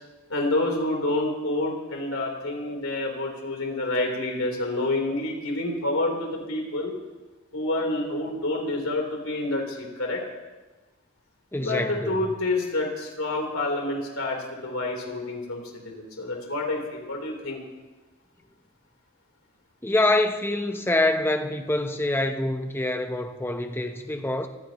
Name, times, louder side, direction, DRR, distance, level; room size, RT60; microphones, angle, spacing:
voice 1, 0.3-6.9 7.5-10.2 11.6-17.6, left 2 dB, 80° left, 0 dB, 3.8 m, -28 dB
voice 2, 11.5-12.2 19.8-24.5, left 2 dB, 10° left, 6 dB, 0.9 m, -25 dB
24.0 x 15.5 x 3.1 m, 1.2 s
head